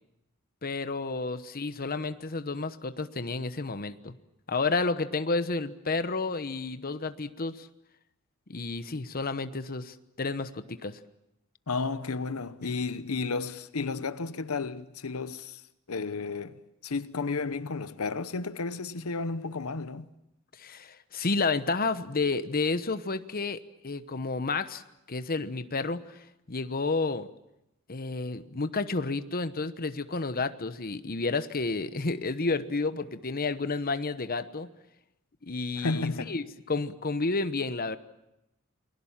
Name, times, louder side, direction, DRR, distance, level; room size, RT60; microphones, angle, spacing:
voice 1, 0.6-4.1 4.5-7.7 8.5-11.0 20.6-24.8 25.1-26.2 26.5-27.3 27.9-34.7 35.4-38.0, left 3 dB, 45° left, 1.1 m, -31 dB
voice 2, 11.7-15.6 15.9-20.1 35.7-36.4, left 4 dB, 80° left, 0.9 m, -32 dB
29.0 x 21.0 x 7.4 m
head